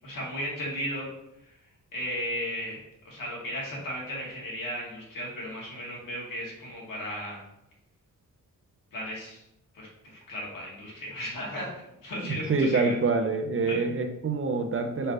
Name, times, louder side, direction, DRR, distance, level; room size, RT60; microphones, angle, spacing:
voice 1, 0.0-1.1 1.4-1.5 1.9-7.4 8.9-9.4 9.7-11.7 12.0-12.9 13.7-13.8, equal, 85° left, -4 dB, 2.3 m, -35 dB
voice 2, 12.2-15.1, right 4 dB, 40° right, 6 dB, 0.8 m, -26 dB
5.5 x 5.3 x 3.4 m, 0.83 s
wide cardioid pair, 110°, 33 cm